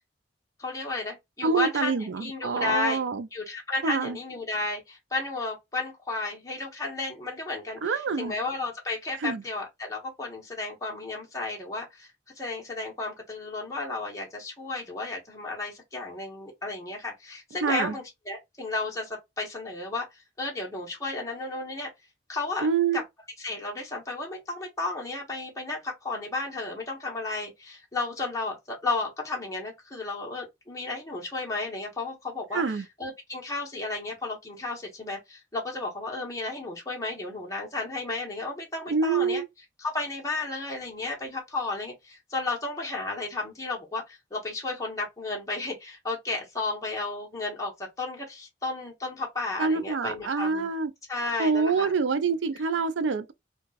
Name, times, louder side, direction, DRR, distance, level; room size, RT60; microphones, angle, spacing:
voice 1, 0.6-3.0 3.3-12.1 12.4-21.9 22.3-22.7 22.9-23.0 23.4-32.6 33.0-39.4 39.8-50.7 51.1-51.9 52.2-52.3, left 3 dB, 15° left, 1.0 m, -33 dB
voice 2, 1.4-3.3 3.8-4.2 7.8-8.3 9.2-9.4 17.6-17.9 22.6-23.0 32.5-32.9 38.9-39.5 49.6-50.9 51.4-53.3, right 5 dB, 85° right, 0.4 m, -26 dB
2.3 x 2.3 x 3.9 m
head